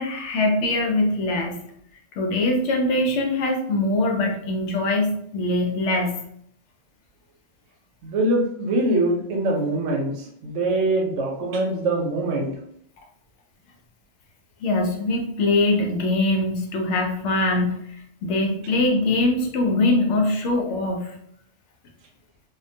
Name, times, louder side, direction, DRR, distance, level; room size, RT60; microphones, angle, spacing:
voice 1, 0.0-1.6 2.2-6.2 14.6-17.8 18.2-21.1, left 2 dB, 75° left, 2 dB, 0.9 m, -22 dB
voice 2, 8.0-12.5, right 2 dB, 90° right, 1 dB, 1.0 m, -23 dB
2.4 x 2.1 x 2.6 m, 0.69 s
omnidirectional pair, 1.3 m